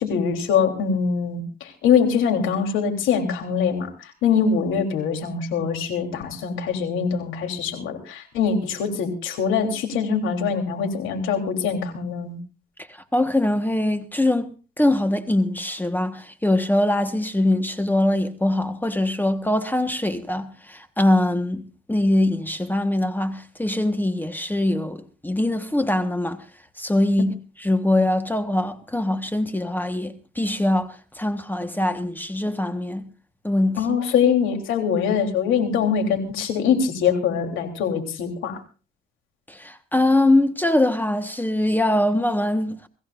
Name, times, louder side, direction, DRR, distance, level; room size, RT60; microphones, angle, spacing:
voice 1, 0.0-12.4 33.8-38.6, left 6 dB, 90° left, 3.4 m, -23 dB
voice 2, 13.1-26.4 26.8-33.1 33.4-33.8 39.5-42.9, left 1 dB, 10° left, 1.3 m, -22 dB
25.0 x 15.0 x 2.5 m
cardioid pair, 90°, 20 cm